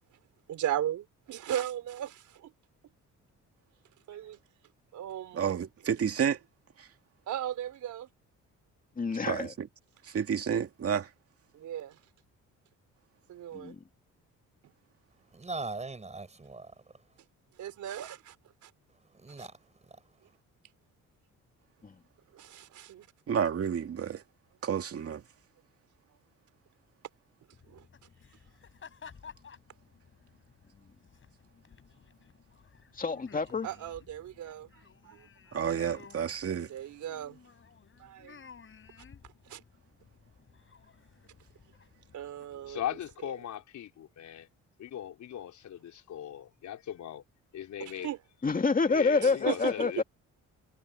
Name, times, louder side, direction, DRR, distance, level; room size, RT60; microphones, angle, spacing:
voice 1, 0.5-2.5 4.1-4.4 4.9-5.6 7.3-8.1 11.5-12.0 13.3-13.7 17.6-18.4 18.6-18.7 19.4-19.5 22.3-23.1 27.7-27.9 33.6-35.3 36.7-37.4 38.0-38.3 39.5-39.6 42.1-42.8 47.8-48.2 49.2-50.0, right 11 dB, 75° right, 4.0 m, -37 dB
voice 2, 5.3-6.4 6.8-6.9 9.3-9.7 10.0-11.1 23.3-24.2 24.6-25.2 35.5-36.7, right 7 dB, 50° right, 2.3 m, -30 dB
voice 3, 9.0-9.5 13.5-13.8 21.8-21.9 33.0-33.7 48.4-50.0, left 4 dB, 30° left, 2.4 m, -27 dB
voice 4, 15.3-17.1 18.9-20.1, right 3 dB, 20° right, 5.2 m, -41 dB
sound 1, 27.5-43.1, left 6 dB, 45° left, 4.9 m, -55 dB
voice 5, 42.7-44.5 44.8-47.2 47.5-48.1 48.9-50.0, left 10 dB, 70° left, 4.9 m, -39 dB
cardioid pair, 90°, 30 cm